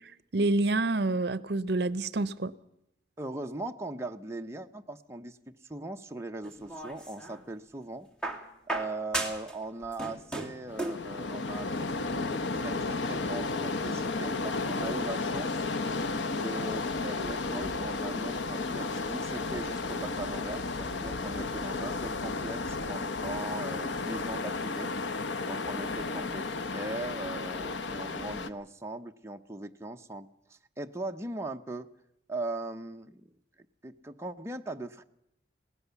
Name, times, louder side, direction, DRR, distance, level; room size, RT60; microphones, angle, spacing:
voice 1, 0.3-2.5, right 2 dB, 65° right, 18 dB, 0.7 m, -27 dB
voice 2, 3.2-5.4 5.6-8.1 8.7-15.7 16.3-24.9 25.4-31.9 32.3-33.3 33.8-35.0, right 2 dB, 15° right, 4 dB, 0.7 m, -39 dB
sound 1, 6.4-7.4 8.2-9.6 9.8-11.1 12.2-12.3, right 2 dB, 5° left, 2.3 m, -35 dB
sound 2, 10.7-28.5, left 3 dB, 90° left, 0.9 m, -33 dB
21.0 x 18.0 x 7.0 m, 0.82 s
head